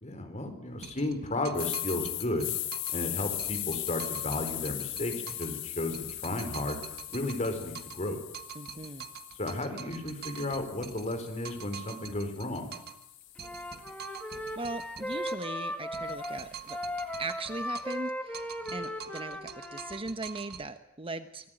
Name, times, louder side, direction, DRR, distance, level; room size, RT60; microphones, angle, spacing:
voice 1, 0.0-2.5 2.9-6.8 7.1-8.2 9.4-12.7, left 2 dB, 35° left, 6 dB, 4.4 m, -33 dB
sound 1, 0.8-3.0 3.4-5.6 5.9-8.1 8.3-13.0 13.4-15.6 15.9-18.1 18.3-20.7, right 8 dB, 50° right, 1.7 m, -45 dB
sound 2, 1.5-9.6 10.1-14.3, left 14 dB, 60° left, 1.5 m, -39 dB
voice 2, 8.5-9.1 14.6-16.8 17.2-21.5, right 2 dB, 25° right, 9 dB, 1.1 m, -39 dB
Wind instrument woodwind instrument, 13.4-20.0, left 1 dB, 5° left, 2.5 m, -37 dB
24.5 x 19.5 x 9.1 m, 0.78 s
head